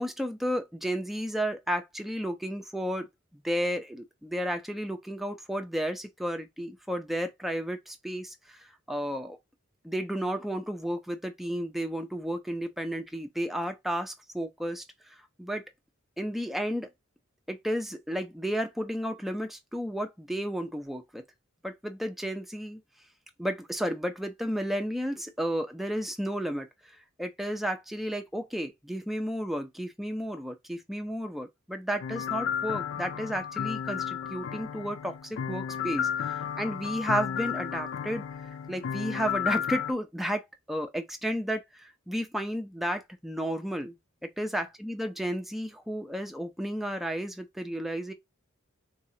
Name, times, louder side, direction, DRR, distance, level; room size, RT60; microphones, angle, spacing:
voice 1, 0.0-3.1 3.3-8.6 8.9-9.4 9.8-14.8 15.4-15.6 16.2-16.9 17.5-21.2 21.6-22.8 23.4-26.7 27.2-36.1 36.6-38.3 38.7-43.9 44.4-48.1, equal, ahead, 0.5 m, -32 dB
sound 1, 32.0-39.9, left 8 dB, 60° left, 0.3 m, -33 dB
4.0 x 2.4 x 2.7 m
head